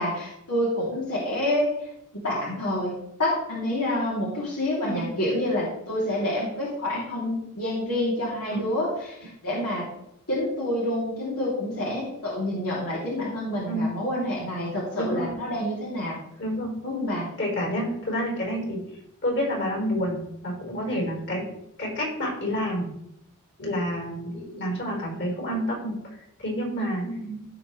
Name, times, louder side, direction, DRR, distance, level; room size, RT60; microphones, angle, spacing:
voice 1, 0.0-1.7 2.2-2.9 3.2-9.8 10.3-16.2 16.8-17.3 27.0-27.4, left 1 dB, 80° left, -6 dB, 3.0 m, -28 dB
voice 2, 14.9-15.3 16.4-16.7 17.4-18.8 19.2-21.4 21.8-22.8 23.6-27.0, equal, 55° left, -2 dB, 4.4 m, -29 dB
16.0 x 5.9 x 3.3 m, 0.79 s
head